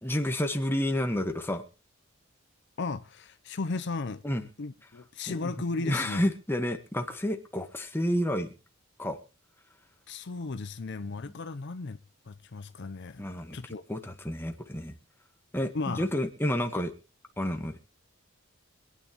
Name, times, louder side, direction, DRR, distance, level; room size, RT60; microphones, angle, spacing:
voice 1, 0.0-1.6 4.2-4.5 5.3-5.5 5.8-8.5 9.0-9.2 13.2-13.6 13.9-15.0 15.5-16.9 17.4-17.8, left 1 dB, 10° left, 1.4 m, -30 dB
voice 2, 2.8-4.2 4.6-6.2 10.1-12.0 12.3-13.2 13.5-13.8 15.7-16.1, left 3 dB, 55° left, 0.6 m, -35 dB
25.5 x 9.3 x 3.0 m
head